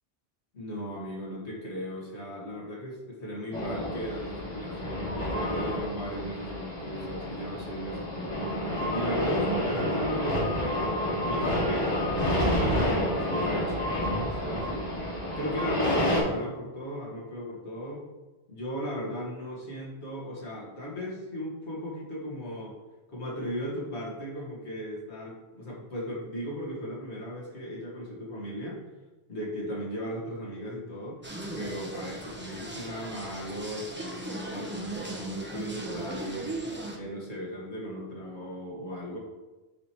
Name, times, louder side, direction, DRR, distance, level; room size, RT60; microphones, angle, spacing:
voice 1, 0.5-12.0 12.3-15.1 15.3-18.1 18.5-22.8 23.1-28.8 29.3-31.3 31.5-36.6 36.9-39.2, equal, 70° left, -5 dB, 2.1 m, -37 dB
sound 1, 3.5-16.2, equal, 25° left, 2.2 m, -29 dB
sound 2, 31.2-37.0, right 2 dB, 10° right, 0.7 m, -38 dB
9.4 x 5.0 x 3.0 m, 1.1 s
omnidirectional pair, 1.2 m